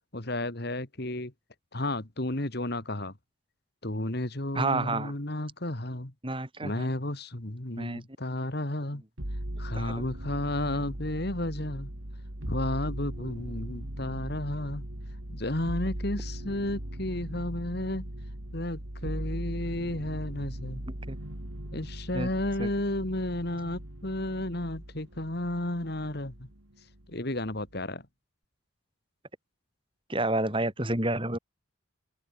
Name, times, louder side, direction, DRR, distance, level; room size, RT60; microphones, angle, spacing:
voice 1, 0.1-1.3 1.7-3.1 3.8-6.1 6.6-9.0 9.6-11.9 12.5-14.8 15.3-18.1 18.5-20.9 21.7-26.5 27.1-28.1, left 1 dB, 50° left, 2.3 m, -32 dB
voice 2, 4.6-5.1 6.2-6.9 7.8-8.0 9.8-10.0 21.1-21.2 22.1-22.3 22.6-22.7 30.1-31.4, right 2 dB, 25° right, 3.7 m, -29 dB
sound 1, 9.2-26.6 26.9-27.7, right 1 dB, 85° right, 3.9 m, -39 dB
open air
head